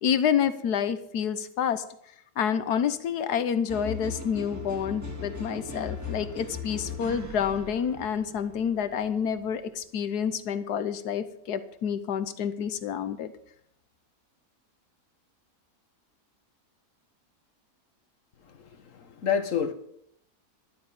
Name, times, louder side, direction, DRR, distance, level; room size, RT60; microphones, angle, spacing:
voice 1, 0.0-1.8 2.4-13.3, left 8 dB, 80° left, 12 dB, 1.5 m, -28 dB
sound 1, 3.7-9.6, left 4 dB, 10° right, 2.3 m, -39 dB
voice 2, 18.4-19.7, left 7 dB, 55° left, 8 dB, 1.5 m, -29 dB
12.0 x 7.4 x 8.9 m, 0.71 s
omnidirectional pair, 1.7 m